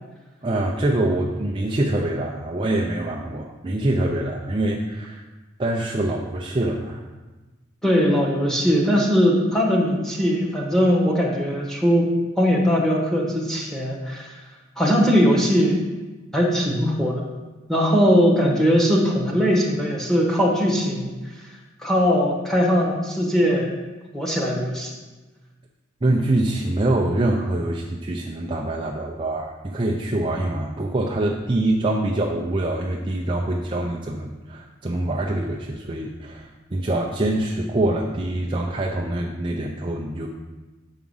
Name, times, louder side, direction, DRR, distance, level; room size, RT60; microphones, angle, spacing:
voice 1, 0.4-5.2 5.6-7.0 26.0-40.3, right 1 dB, 25° right, -1 dB, 0.5 m, -24 dB
voice 2, 7.8-12.1 12.4-14.3 14.8-15.8 16.3-17.2 17.7-21.1 21.8-23.7 24.1-24.9, equal, ahead, -3 dB, 1.2 m, -20 dB
7.2 x 4.8 x 5.5 m, 1.2 s
head